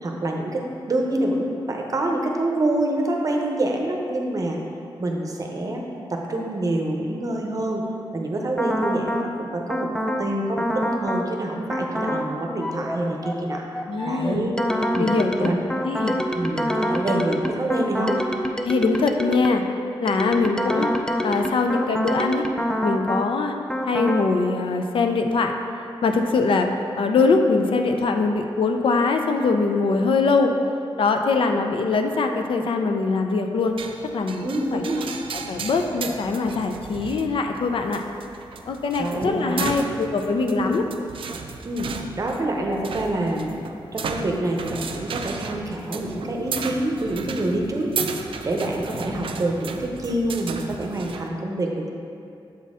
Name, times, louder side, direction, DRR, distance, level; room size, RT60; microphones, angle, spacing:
voice 1, 0.0-4.6 5.0-5.8 6.1-7.8 8.1-9.9 10.2-13.6 14.1-14.6 14.9-15.1 15.4-15.6 16.4-18.2 34.4-35.1 39.0-39.7 40.5-40.7 41.6-41.9 42.1-43.5 43.9-48.1 48.4-52.0, right 1 dB, 40° right, 0 dB, 0.7 m, -26 dB
sound 1, 8.6-9.3 9.7-10.3 10.6-11.3 11.7-12.3 12.6-19.7 20.1-23.3 23.7-24.3, equal, 5° left, 0.3 m, -26 dB
voice 2, 13.9-14.5 15.0-15.5 15.8-16.1 18.6-19.6 20.0-20.9 21.2-22.4 22.8-23.5 23.8-25.5 26.0-26.7 27.0-30.5 31.0-33.7 34.1-34.4 34.7-34.8 35.3-38.0 38.7-40.8, left 4 dB, 75° left, 5 dB, 0.4 m, -22 dB
sound 2, 33.8-51.3, right 5 dB, 75° right, 0.4 m, -35 dB
7.3 x 4.2 x 3.6 m, 2.6 s
wide cardioid pair, 120°, 9 cm